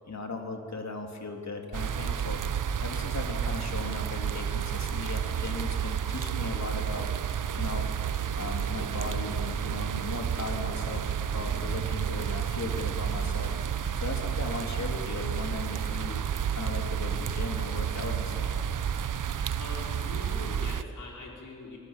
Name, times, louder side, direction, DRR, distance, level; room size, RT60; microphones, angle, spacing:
voice 1, 0.1-2.4 2.8-7.1 7.6-7.9 8.3-16.2 16.5-18.5, left 3 dB, 60° left, 3 dB, 3.4 m, -37 dB
sound 1, 1.7-20.8, right 8 dB, 80° right, 0.8 m, -31 dB
sound 2, 8.8-17.8, right 1 dB, 35° right, 7.7 m, -55 dB
voice 2, 19.6-21.8, left 3 dB, 90° left, -2 dB, 5.0 m, -42 dB
26.5 x 18.5 x 7.6 m, 2.6 s
cardioid pair, 55°, 31 cm